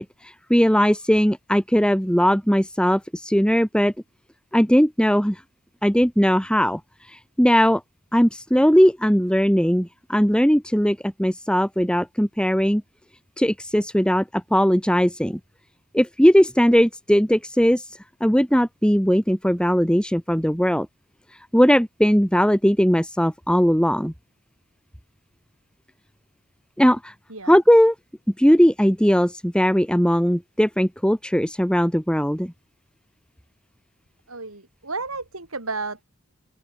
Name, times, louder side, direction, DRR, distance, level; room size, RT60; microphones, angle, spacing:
voice 1, 0.0-3.9 4.5-5.4 5.8-6.8 7.1-7.8 8.1-12.8 13.4-15.4 15.9-20.9 21.5-24.1 26.8-27.1 27.5-27.9 28.4-32.5, equal, 5° left, 7.3 m, -19 dB
voice 2, 34.3-36.0, right 3 dB, 75° right, 6.4 m, -32 dB
open air
head